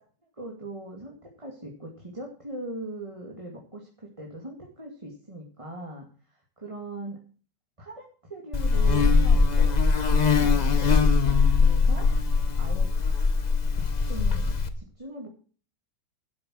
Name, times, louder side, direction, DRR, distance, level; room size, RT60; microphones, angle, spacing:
voice 1, 0.3-7.2 7.8-9.7 10.0-12.1 12.6-13.5 13.7-15.3, right 2 dB, 20° right, 0 dB, 2.3 m, -41 dB
Buzz, 8.5-14.7, left 4 dB, 30° left, 0.9 m, -21 dB
12.0 x 8.1 x 6.2 m, 0.40 s
omnidirectional pair, 1.8 m